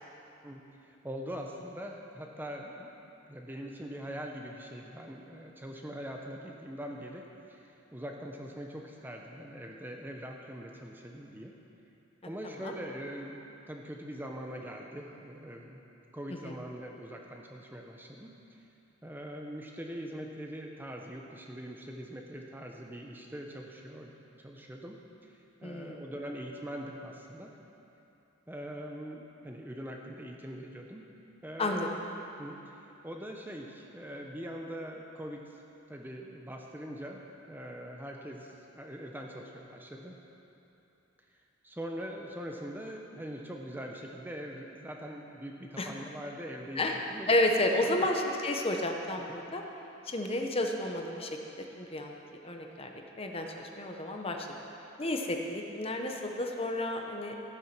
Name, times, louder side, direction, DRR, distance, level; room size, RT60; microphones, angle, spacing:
voice 1, 0.4-2.9 3.3-7.2 7.5-11.5 12.3-15.8 16.1-18.6 19.0-24.1 24.4-25.0 25.6-27.5 28.5-31.1 31.4-32.0 32.4-35.6 35.9-40.2 41.6-47.3 47.8-48.1 49.3-49.4, equal, 10° right, 1 dB, 0.8 m, -42 dB
voice 2, 25.6-26.0 31.6-31.9 45.8-45.9 46.8-46.9 47.3-49.6 50.1-51.3 51.8-52.1 52.4-52.9 53.2-54.5 55.0-57.3, left 1 dB, 30° left, 2 dB, 1.0 m, -31 dB
14.5 x 9.6 x 6.0 m, 2.9 s
head